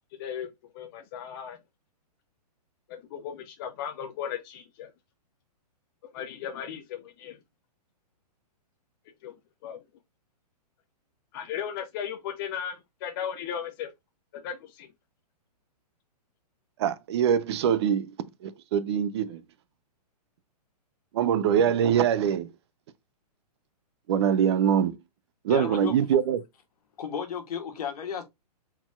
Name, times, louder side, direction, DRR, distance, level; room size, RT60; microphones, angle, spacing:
voice 1, 0.7-1.6 2.9-4.9 6.1-7.4 9.2-9.3 9.6-9.8 11.3-13.9 14.3-14.9, left 8 dB, 35° left, 0.6 m, -36 dB
voice 2, 16.8-18.1 18.4-19.4 21.1-22.5 24.1-24.9 25.4-26.4, right 8 dB, 40° right, 0.5 m, -23 dB
voice 3, 25.5-26.2 27.0-28.2, left 7 dB, 65° left, 1.6 m, -33 dB
4.1 x 4.0 x 2.2 m
hypercardioid pair, 150°, 21 cm